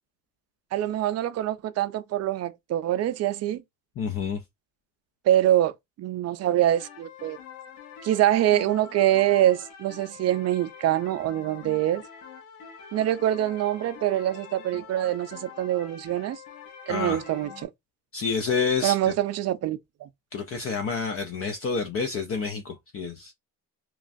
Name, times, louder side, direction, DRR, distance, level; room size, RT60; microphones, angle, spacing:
voice 1, 0.7-3.6 5.2-5.7 6.0-7.4 8.0-12.0 12.9-16.4 16.9-17.7 18.8-20.1, right 12 dB, 50° right, 0.4 m, -24 dB
voice 2, 4.0-4.4 16.9-17.2 18.1-19.1 20.3-23.3, left 5 dB, 40° left, 0.5 m, -28 dB
sound 1, 6.7-17.6, left 7 dB, 80° left, 1.0 m, -45 dB
3.0 x 2.3 x 2.5 m
cardioid pair, 105°, 34 cm